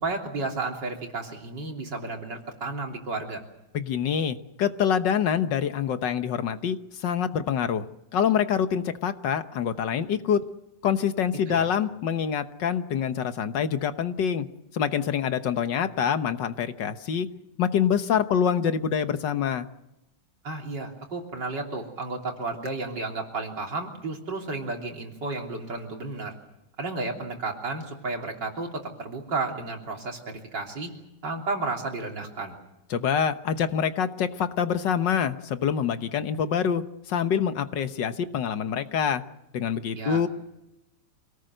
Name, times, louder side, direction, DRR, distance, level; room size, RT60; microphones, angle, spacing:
voice 1, 0.0-3.4 11.5-11.7 20.4-26.3 26.8-30.9 31.2-32.6 39.9-40.2, right 3 dB, 70° right, 2 dB, 4.0 m, -32 dB
voice 2, 3.7-7.9 8.1-10.4 10.8-14.5 14.7-17.3 17.6-19.7 32.9-39.2 39.5-40.3, left 8 dB, 75° left, 10 dB, 1.8 m, -26 dB
26.5 x 18.5 x 7.9 m, 0.94 s
omnidirectional pair, 2.0 m